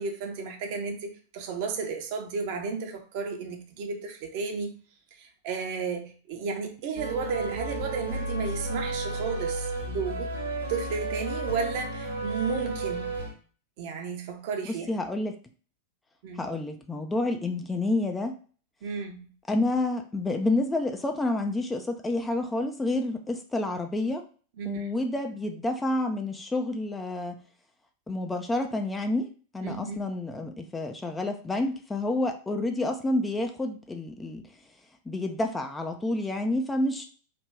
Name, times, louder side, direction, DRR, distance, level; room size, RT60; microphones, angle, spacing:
voice 1, 0.0-4.7 5.2-10.3 10.7-13.2 13.8-14.9 16.2-16.5 18.8-19.3 24.6-24.9 29.6-30.0, right 5 dB, 50° right, 0.7 m, -33 dB
sound 1, 6.9-13.3, right 2 dB, 75° right, 0.9 m, -33 dB
voice 2, 14.6-15.4 16.3-18.4 19.5-24.2 24.6-27.4 28.1-34.4 35.1-37.0, left 2 dB, 10° left, 0.4 m, -29 dB
3.3 x 2.4 x 3.2 m
figure-of-eight pair, 90°, 0 cm